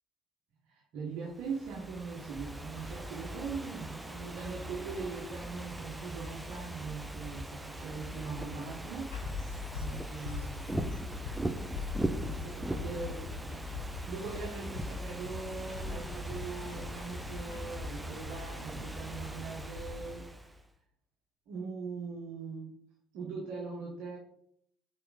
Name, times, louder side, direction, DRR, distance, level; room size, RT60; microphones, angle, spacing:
voice 1, 0.7-11.1 12.2-13.6 14.0-20.6 21.5-22.7 23.1-24.2, right 4 dB, 60° right, -2 dB, 1.3 m, -41 dB
Ocean / Fireworks, 1.3-20.6, right 1 dB, 10° right, 0.6 m, -40 dB
sound 1, 9.1-20.0, left 5 dB, 75° left, 2.4 m, -42 dB
5.7 x 4.4 x 4.0 m, 0.67 s
figure-of-eight pair, 55°, 0 cm